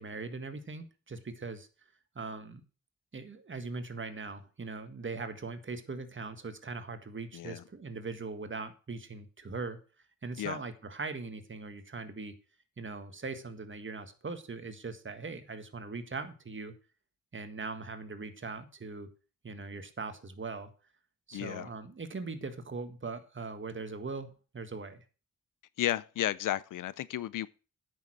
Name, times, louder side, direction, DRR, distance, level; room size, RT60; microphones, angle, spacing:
voice 1, 0.0-1.7 2.1-2.6 3.1-9.8 10.2-12.4 12.8-16.8 17.3-19.1 19.4-20.7 21.3-25.0, right 4 dB, 35° right, 1.7 m, -40 dB
voice 2, 7.3-7.6 10.4-10.6 21.3-21.7 25.8-27.5, left 13 dB, 75° left, 0.5 m, -33 dB
8.9 x 6.8 x 6.1 m
cardioid pair, 55°, 32 cm